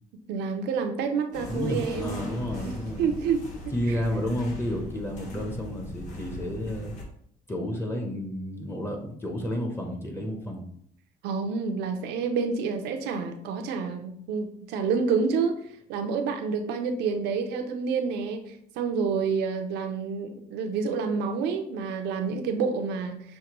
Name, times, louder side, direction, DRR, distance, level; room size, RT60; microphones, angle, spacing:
voice 1, 0.3-2.2 2.6-2.7 3.0-3.7 11.2-15.6 15.9-23.4, right 5 dB, 85° right, 6 dB, 0.6 m, -28 dB
sound 1, 1.3-7.0, left 2 dB, 45° left, 1.2 m, -40 dB
voice 2, 1.5-3.1 3.7-6.9 7.5-10.6, equal, 15° left, 2 dB, 0.8 m, -31 dB
6.3 x 2.2 x 2.9 m, 0.67 s
cardioid pair, 110°, 17 cm